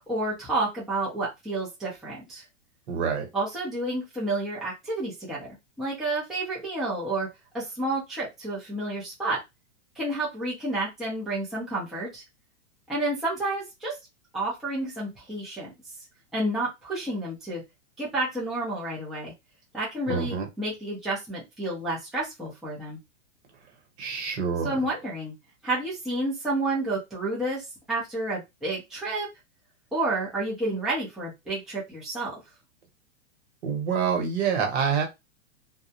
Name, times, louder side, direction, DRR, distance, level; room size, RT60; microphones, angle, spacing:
voice 1, 0.0-2.4 3.3-7.3 7.5-9.4 10.0-12.2 12.9-14.0 14.3-15.7 16.3-17.6 18.0-19.3 19.7-23.0 24.6-25.3 25.6-29.3 29.9-32.3, right 2 dB, ahead, 0.5 m, -30 dB
voice 2, 2.9-3.2 20.1-20.5 24.0-24.8 33.6-35.1, right 6 dB, 55° right, 1.0 m, -26 dB
2.3 x 2.0 x 2.7 m
hypercardioid pair, 140°, 38 cm